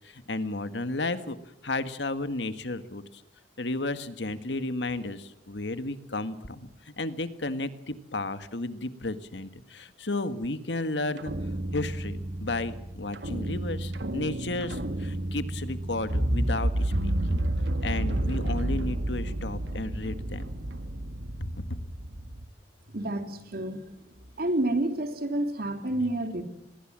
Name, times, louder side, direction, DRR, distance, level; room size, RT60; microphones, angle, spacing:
voice 1, 0.0-1.4 1.6-3.2 3.6-17.4 17.8-20.4 21.4-21.6, left 2 dB, 85° left, 11 dB, 1.7 m, -33 dB
sound 1, 11.2-22.5, right 1 dB, 80° right, 1.8 m, -30 dB
voice 2, 22.9-23.9 24.4-26.4, right 1 dB, 60° right, 6 dB, 3.0 m, -29 dB
26.5 x 20.5 x 7.6 m, 0.82 s
head